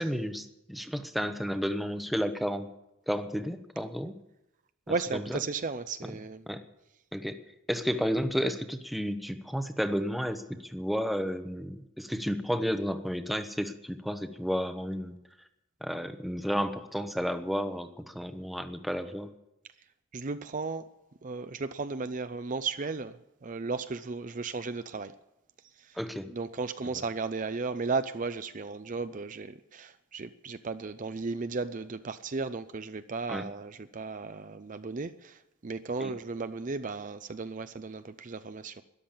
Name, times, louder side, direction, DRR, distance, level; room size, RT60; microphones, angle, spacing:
voice 1, 0.0-2.7 3.1-4.1 5.1-5.4 6.5-6.6 7.1-7.4 7.7-15.2 15.8-19.3 26.0-26.3 33.3-33.4 36.0-36.1, equal, ahead, 9 dB, 0.8 m, -32 dB
voice 2, 4.9-6.4 20.1-20.9 21.2-25.2 25.8-26.0 26.3-38.8, right 4 dB, 40° right, 11 dB, 0.5 m, -35 dB
13.0 x 11.5 x 8.7 m, 0.90 s
head